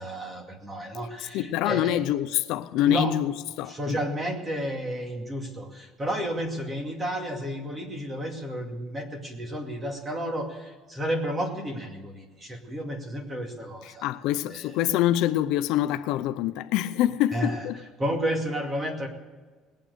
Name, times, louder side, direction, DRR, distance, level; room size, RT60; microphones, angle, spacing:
voice 1, 0.0-2.0 2.8-3.1 3.7-14.1 14.5-14.6 17.3-17.6 18.0-19.1, equal, 20° right, 2.2 m, -31 dB
voice 2, 1.3-4.0 13.8-17.8, left 13 dB, 70° left, 0.6 m, -26 dB
19.5 x 8.9 x 6.7 m
cardioid pair, 150°, 0 cm